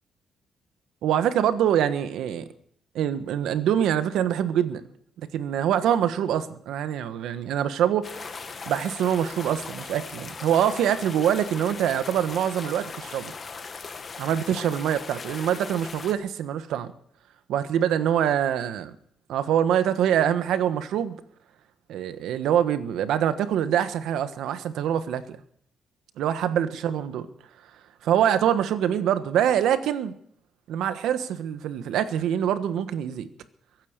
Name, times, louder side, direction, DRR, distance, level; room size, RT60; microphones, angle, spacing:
voice 1, 1.0-2.5 2.9-4.8 5.3-8.2 8.7-13.3 14.2-16.9 17.5-19.0 19.3-21.2 21.9-25.4 26.2-27.3 28.0-30.1 30.7-33.3, right 9 dB, 75° right, 11 dB, 1.3 m, -24 dB
sound 1, 8.0-16.1, left 5 dB, 30° left, 1.3 m, -39 dB
22.5 x 9.5 x 6.8 m, 0.64 s
cardioid pair, 170°, 0 cm